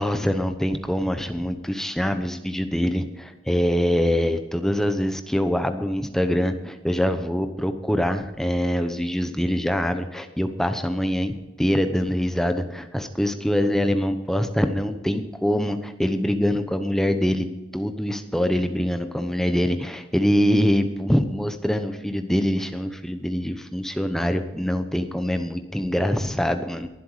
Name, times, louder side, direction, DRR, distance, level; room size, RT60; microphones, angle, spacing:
voice 1, 0.0-17.5 17.7-26.9, equal, ahead, 7 dB, 0.8 m, -24 dB
22.5 x 7.8 x 4.9 m, 1.0 s
head